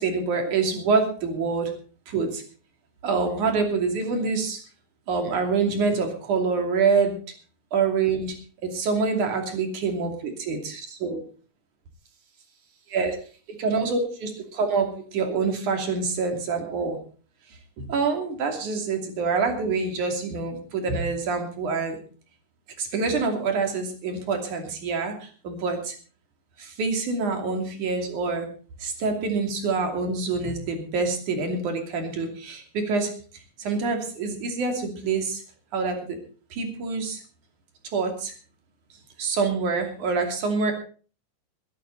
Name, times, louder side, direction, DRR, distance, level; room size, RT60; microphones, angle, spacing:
voice 1, 0.0-1.7 2.1-2.4 3.0-4.6 5.1-7.2 7.7-11.2 12.9-13.2 13.6-17.0 17.8-22.0 22.8-26.0 26.6-28.5 28.8-33.1 33.6-35.4 35.7-36.2 36.5-37.2 37.9-38.3 39.2-40.7, right 4 dB, 65° right, 4 dB, 4.2 m, -26 dB
22.0 x 10.5 x 4.1 m, 0.39 s
omnidirectional pair, 3.8 m